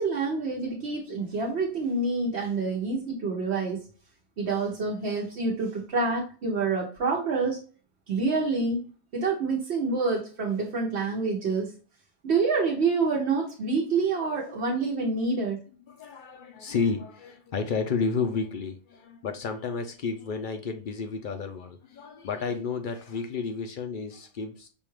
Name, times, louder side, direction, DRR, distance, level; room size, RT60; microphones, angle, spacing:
voice 1, 0.0-3.8 4.4-7.6 8.1-8.8 9.1-11.7 12.2-15.6, right 4 dB, 75° right, -3 dB, 1.1 m, -27 dB
voice 2, 15.9-24.7, left 5 dB, 60° left, 6 dB, 0.6 m, -31 dB
5.3 x 2.3 x 3.1 m, 0.38 s
omnidirectional pair, 1.1 m